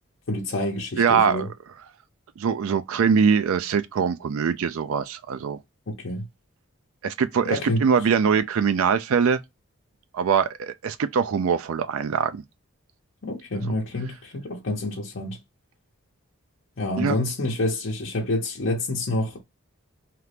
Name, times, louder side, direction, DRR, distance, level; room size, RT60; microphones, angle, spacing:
voice 1, 0.3-1.5 5.9-6.2 7.5-7.8 13.2-15.4 16.8-19.4, left 1 dB, 60° left, 0.7 m, -28 dB
voice 2, 1.0-1.5 2.4-5.6 7.0-9.4 10.1-12.4 13.6-13.8 17.0-17.2, right 6 dB, 85° right, 0.4 m, -22 dB
2.9 x 2.4 x 3.3 m
head